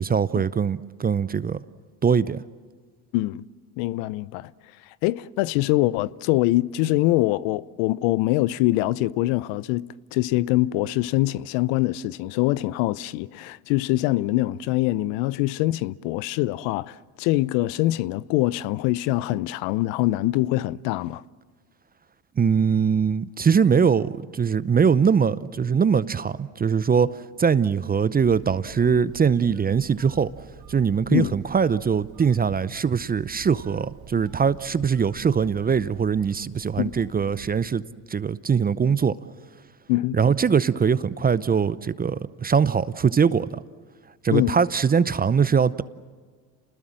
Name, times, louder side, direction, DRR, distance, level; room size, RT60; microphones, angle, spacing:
voice 1, 0.0-1.6 2.0-2.4 22.4-27.1 27.4-30.3 30.7-37.8 38.1-39.2 40.1-43.6 44.2-45.8, right 6 dB, 20° right, 0.6 m, -22 dB
voice 2, 3.1-3.4 3.8-4.5 5.0-21.2 31.1-31.3 36.8-36.9 39.9-40.2 44.3-44.5, left 17 dB, 65° left, 0.7 m, -24 dB
Telephone, 28.2-37.9, right 6 dB, 50° right, 3.4 m, -47 dB
29.5 x 20.0 x 7.6 m
hypercardioid pair, 80°, 47 cm